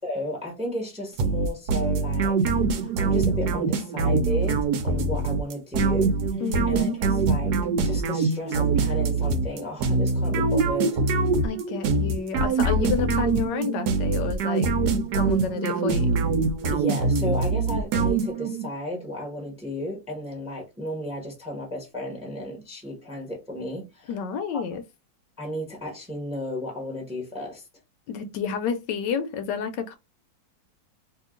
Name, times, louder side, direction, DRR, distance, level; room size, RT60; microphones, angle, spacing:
voice 1, 0.0-2.4 2.7-4.6 4.8-6.4 6.7-7.5 7.8-11.0 16.7-24.2 25.4-27.7, left 1 dB, 5° right, 0.8 m, -34 dB
sound 1, 1.2-18.7, right 4 dB, 70° right, 1.1 m, -24 dB
voice 2, 6.4-7.0 11.4-14.7 15.2-16.2 24.1-24.8 28.1-30.0, left 6 dB, 75° left, 1.2 m, -30 dB
2.9 x 2.7 x 3.6 m
omnidirectional pair, 2.0 m